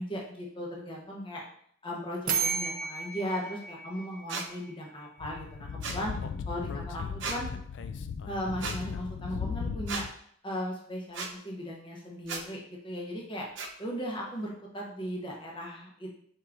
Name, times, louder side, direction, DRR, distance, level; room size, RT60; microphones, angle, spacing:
voice 1, 0.0-1.4 1.8-6.1 6.5-7.5 8.3-10.1 10.4-13.5 13.8-16.1, equal, 25° left, -1 dB, 0.8 m, -37 dB
sound 1, 2.3-5.0, right 5 dB, 45° right, 0.5 m, -33 dB
sound 2, 4.3-4.5 5.8-6.0 7.2-7.4 8.6-8.8 9.9-10.0 11.1-11.3 12.2-12.4 13.6-13.7, right 4 dB, 75° right, 0.7 m, -35 dB
Speech / Wind, 5.2-10.1, left 5 dB, 70° left, 0.3 m, -37 dB
4.5 x 4.5 x 2.5 m, 0.64 s
head